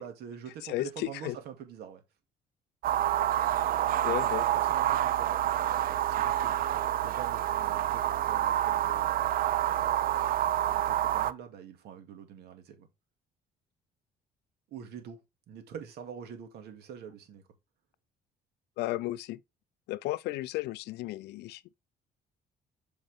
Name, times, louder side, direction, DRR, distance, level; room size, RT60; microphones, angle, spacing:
voice 1, 0.0-2.0 4.2-4.3 4.5-9.4 10.7-12.9 14.7-15.2 15.5-17.4, right 8 dB, 75° right, 2.2 m, -45 dB
voice 2, 0.7-1.3 4.0-4.5 18.8-19.4 19.9-21.8, left 17 dB, 80° left, 0.5 m, -34 dB
sound 1, 2.8-11.3, right 12 dB, 60° right, 0.6 m, -28 dB
7.8 x 5.2 x 3.5 m
cardioid pair, 110°, 17 cm